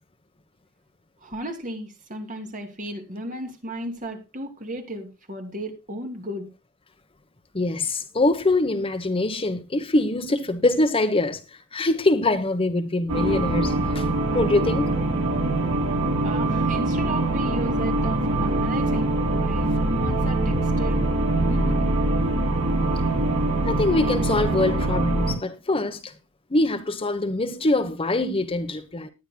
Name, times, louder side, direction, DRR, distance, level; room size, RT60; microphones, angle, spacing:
voice 1, 1.2-6.5 16.2-21.1 21.5-21.8, right 1 dB, 35° right, 2.7 m, -34 dB
voice 2, 7.5-11.4 11.7-14.1 14.3-14.9 23.6-26.1 26.5-29.1, left 2 dB, 25° left, 1.0 m, -23 dB
sound 1, 13.1-25.3, right 2 dB, 70° right, 4.3 m, -23 dB
19.5 x 10.0 x 2.2 m
head